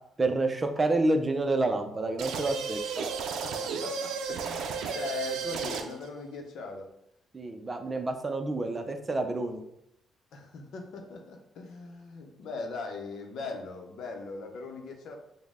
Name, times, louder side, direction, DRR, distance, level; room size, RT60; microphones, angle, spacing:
voice 1, 0.2-3.1 7.3-9.6, right 2 dB, 25° right, 5 dB, 0.5 m, -28 dB
sound 1, 2.2-6.1, right 6 dB, 85° right, 0.4 m, -33 dB
voice 2, 3.4-6.9 10.3-15.2, left 4 dB, 75° left, 3 dB, 0.7 m, -40 dB
5.1 x 2.1 x 3.6 m, 0.80 s
cardioid pair, 90°, 0 cm